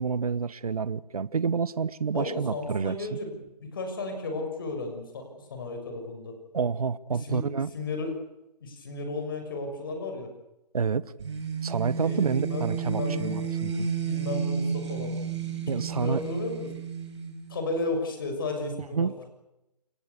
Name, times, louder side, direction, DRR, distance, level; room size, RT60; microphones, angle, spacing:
voice 1, 0.0-3.0 6.5-7.7 10.7-11.1 11.6-13.9 15.7-16.2 18.9-19.3, right 5 dB, 60° right, 1.2 m, -28 dB
voice 2, 2.1-6.4 7.1-8.1 8.6-10.3 12.0-13.4 13.9-15.2 15.4-16.7 17.5-19.1, left 3 dB, 30° left, 6.6 m, -34 dB
sound 1, 11.2-17.8, right 6 dB, 45° right, 6.4 m, -32 dB
29.5 x 17.5 x 8.4 m
hypercardioid pair, 175°, 21 cm